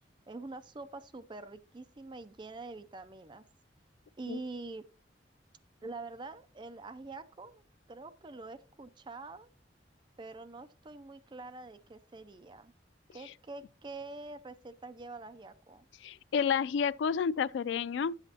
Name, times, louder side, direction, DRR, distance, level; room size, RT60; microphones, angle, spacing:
voice 1, 0.3-3.4 4.2-4.8 5.8-7.6 7.9-9.5 10.2-12.7 13.1-15.9, right 3 dB, 25° right, 0.4 m, -45 dB
voice 2, 16.0-18.2, left 7 dB, 80° left, 0.3 m, -30 dB
11.0 x 8.0 x 2.8 m
head